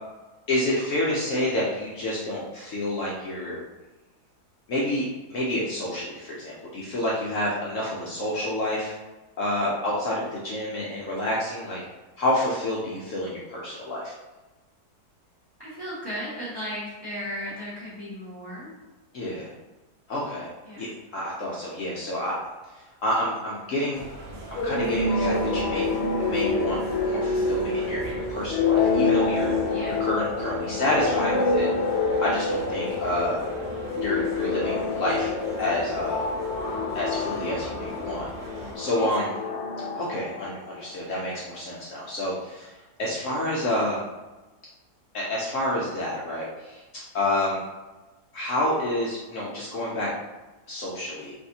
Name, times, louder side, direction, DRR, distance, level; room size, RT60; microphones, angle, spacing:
voice 1, 0.5-3.6 4.7-5.0 5.3-8.9 9.4-11.8 12.2-14.1 19.1-19.5 20.1-20.5 20.8-20.9 21.1-22.3 22.7-24.1 24.5-25.9 26.2-29.6 30.0-31.7 32.2-33.4 34.0-35.3 35.6-36.2 36.9-38.3 38.5-39.3 40.0-44.0 45.1-46.8 47.1-47.6 48.3-50.1 50.7-51.3, left 1 dB, 65° left, -5 dB, 0.8 m, -28 dB
voice 2, 15.6-18.7 20.6-20.9 29.7-30.0 38.9-39.3, equal, 20° right, -9 dB, 0.8 m, -36 dB
sound 1, 23.9-38.8, right 2 dB, 60° right, 0.6 m, -40 dB
sound 2, 24.5-40.9, left 3 dB, 85° left, 1.2 m, -27 dB
3.4 x 2.6 x 2.7 m, 1.2 s
omnidirectional pair, 1.7 m